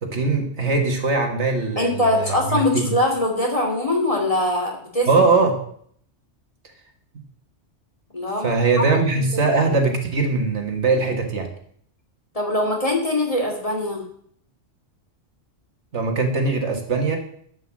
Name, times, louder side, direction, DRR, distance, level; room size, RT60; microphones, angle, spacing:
voice 1, 0.0-2.9 5.1-5.5 8.4-11.5 15.9-17.2, right 3 dB, 70° right, 3 dB, 1.9 m, -21 dB
voice 2, 1.8-5.1 8.1-8.5 9.1-9.3 9.6-9.7 12.3-14.0, left 1 dB, 30° left, -1 dB, 2.5 m, -22 dB
11.0 x 5.7 x 7.3 m, 0.63 s
omnidirectional pair, 1.2 m